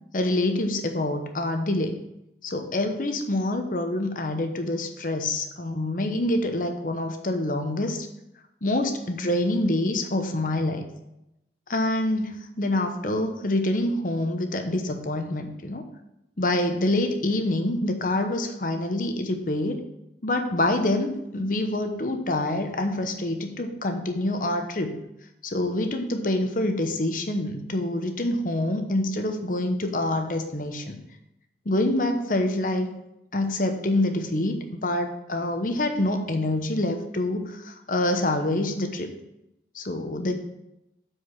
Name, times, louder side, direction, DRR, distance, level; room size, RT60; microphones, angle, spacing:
voice 1, 0.1-2.0 2.4-8.1 8.6-10.9 11.7-15.8 16.4-19.8 20.2-25.0 25.4-31.0 31.7-32.9 33.3-39.1 39.7-40.4, left 1 dB, 45° left, 6 dB, 0.9 m, -26 dB
8.0 x 4.8 x 5.7 m, 0.86 s
head